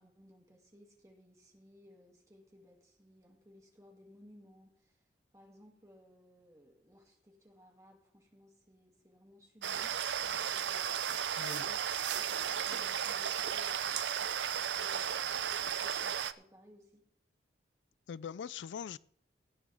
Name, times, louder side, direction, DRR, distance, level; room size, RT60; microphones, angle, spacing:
voice 1, 0.0-5.0 5.3-11.8 12.2-17.0, left 1 dB, 20° right, 1 dB, 2.3 m, -61 dB
sound 1, 9.6-16.3, right 8 dB, 85° right, 0.6 m, -34 dB
voice 2, 18.1-19.0, left 7 dB, 85° left, 20 dB, 0.3 m, -42 dB
17.5 x 8.9 x 3.5 m, 0.66 s
head